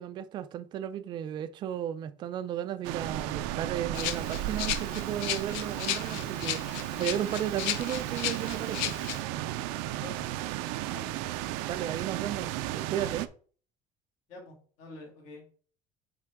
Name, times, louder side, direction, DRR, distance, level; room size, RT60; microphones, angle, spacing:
voice 1, 0.0-8.9 11.6-13.3, right 10 dB, 30° right, 0.4 m, -34 dB
sound 1, 2.8-13.3, right 14 dB, 90° right, 0.5 m, -34 dB
Rattle (instrument), 3.9-9.2, left 12 dB, 85° left, 0.6 m, -35 dB
voice 2, 14.3-15.4, left 2 dB, 55° left, 2.3 m, -46 dB
9.1 x 3.5 x 3.6 m
cardioid pair, 175°, 14 cm